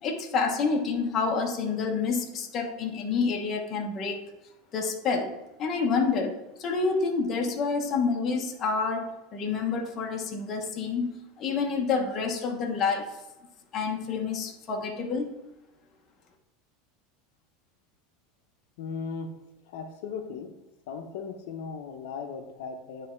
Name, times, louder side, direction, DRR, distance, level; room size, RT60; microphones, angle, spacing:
voice 1, 0.0-4.2 4.7-13.2 13.7-15.3, left 4 dB, 30° left, 2 dB, 1.0 m, -28 dB
voice 2, 18.8-19.3 19.7-20.5 20.9-23.1, left 5 dB, 75° left, 4 dB, 0.8 m, -37 dB
9.7 x 3.3 x 4.5 m, 0.98 s
supercardioid pair, 140°, 0 cm